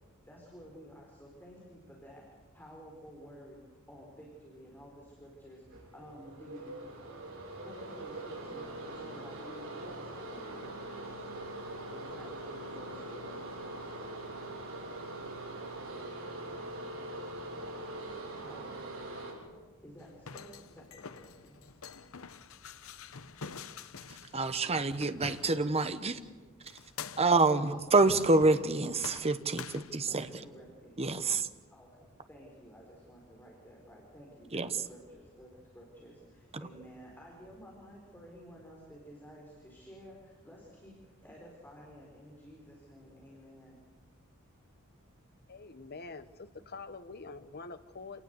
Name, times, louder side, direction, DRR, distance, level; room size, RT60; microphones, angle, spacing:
voice 1, 0.3-2.3 2.5-6.8 7.6-11.3 11.9-13.9 17.9-18.9 19.8-21.8 27.5-27.7 30.1-31.0 31.7-43.8, equal, 10° left, -2 dB, 4.4 m, -52 dB
sound 1, 5.7-19.3, right 1 dB, 75° right, 7.8 m, -42 dB
sound 2, 20.0-26.0 26.7-27.5 28.0-28.7 29.0-30.5, left 5 dB, 70° left, 0.9 m, -46 dB
voice 2, 24.3-26.3 27.2-30.2 31.0-31.5 34.5-34.7, right 3 dB, 30° right, 10 dB, 1.1 m, -27 dB
voice 3, 45.5-48.2, left 4 dB, 50° left, 11 dB, 1.2 m, -45 dB
28.0 x 18.5 x 8.1 m, 1.3 s
head